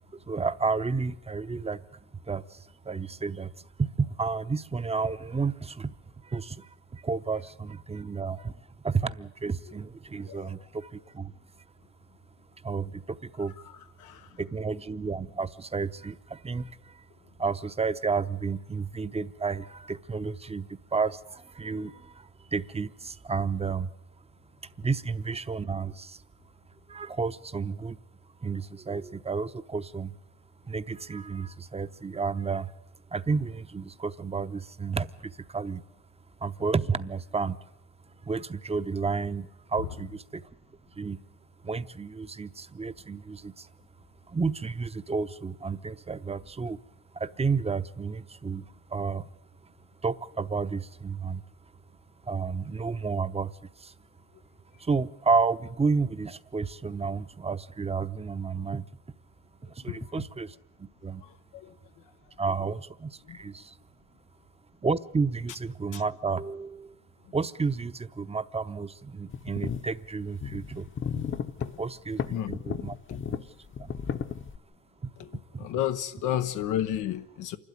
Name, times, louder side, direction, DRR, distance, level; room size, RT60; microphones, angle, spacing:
voice 1, 0.3-2.0 2.3-3.5 3.8-5.9 6.2-8.5 8.8-11.3 12.6-13.5 14.3-17.0 17.4-23.9 24.8-26.2 26.9-28.0 28.4-30.1 30.6-32.7 33.1-35.8 36.4-37.6 38.2-40.5 40.9-41.2 41.6-43.7 44.3-46.8 47.1-49.3 50.0-51.4 52.2-53.9 54.8-58.8 59.7-61.2 62.4-63.8 64.8-66.9 67.3-70.9 71.8-73.0 73.3-73.4 73.8-73.9 75.0-75.1 75.5-75.7, right 4 dB, 20° right, 0.8 m, -31 dB
sound 1, 69.3-69.8 70.4-71.7 72.2-73.4 73.7-74.6, left 7 dB, 40° left, 1.0 m, -33 dB
voice 2, 75.6-77.6, left 11 dB, 90° left, 0.9 m, -31 dB
27.5 x 12.5 x 9.5 m
cardioid pair, 90°, 30 cm